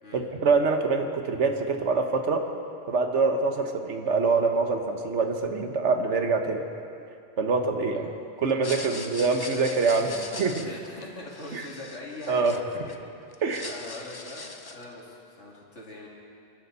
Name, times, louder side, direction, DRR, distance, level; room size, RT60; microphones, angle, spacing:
voice 1, 0.1-2.5 2.9-6.6 7.4-8.1 8.4-10.1 10.4-10.6 11.5-11.6 12.3-12.6 13.4-13.7, right 4 dB, 85° right, 5 dB, 1.5 m, -25 dB
voice 2, 7.7-8.1 8.7-9.0 9.9-13.0 13.6-16.1, left 2 dB, 85° left, -3 dB, 2.9 m, -42 dB
sound 1, 8.5-13.0 13.3-14.9, left 3 dB, 30° left, 0.5 m, -41 dB
26.5 x 11.5 x 4.1 m, 2.5 s
omnidirectional pair, 1.2 m